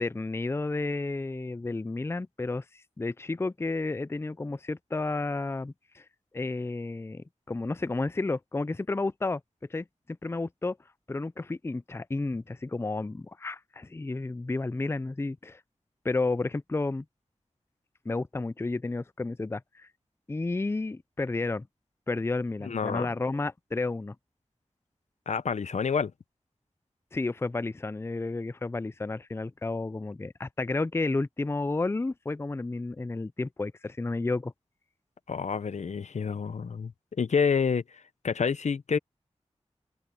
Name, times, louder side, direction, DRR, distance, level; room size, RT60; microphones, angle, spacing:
voice 1, 0.0-6.0 6.3-9.4 9.7-9.8 10.2-10.8 11.1-15.6 16.0-17.0 18.1-19.9 20.3-21.7 22.1-24.2 27.1-34.5, left 3 dB, 20° left, 0.4 m, -31 dB
voice 2, 22.6-23.1 25.3-26.1 35.3-36.9 37.2-37.8 38.2-39.0, left 6 dB, 85° left, 0.7 m, -28 dB
open air
wide cardioid pair, 65°, 12 cm